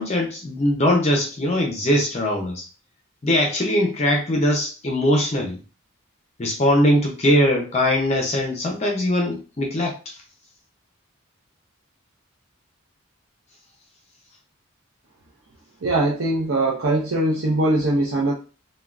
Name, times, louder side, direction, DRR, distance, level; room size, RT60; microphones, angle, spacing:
voice 1, 0.0-2.6 3.2-5.6 6.4-10.1, left 1 dB, 30° left, 1 dB, 0.5 m, -21 dB
voice 2, 15.8-18.3, right 1 dB, 70° right, -3 dB, 0.5 m, -21 dB
3.4 x 2.2 x 2.3 m, 0.34 s
head